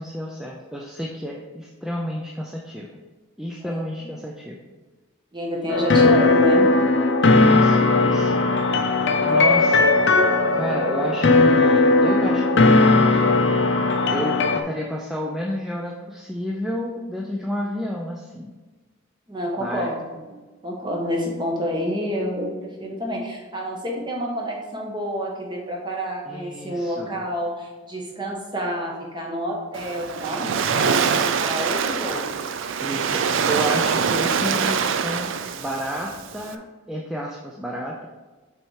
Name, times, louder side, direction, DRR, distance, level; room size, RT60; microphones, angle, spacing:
voice 1, 0.0-3.0 3.4-4.6 7.2-8.5 9.2-9.9 10.5-13.3 14.1-18.5 19.6-19.9 26.3-27.2 32.8-38.1, equal, ahead, -2 dB, 0.4 m, -31 dB
voice 2, 5.3-6.7 9.4-9.5 19.3-20.4 20.6-32.3, equal, 20° right, -1 dB, 1.2 m, -29 dB
sound 1, 5.7-14.6, left 3 dB, 55° left, 0.6 m, -17 dB
Waves surf, 29.7-36.5, right 6 dB, 65° right, 0.4 m, -24 dB
6.2 x 4.3 x 4.7 m, 1.3 s
head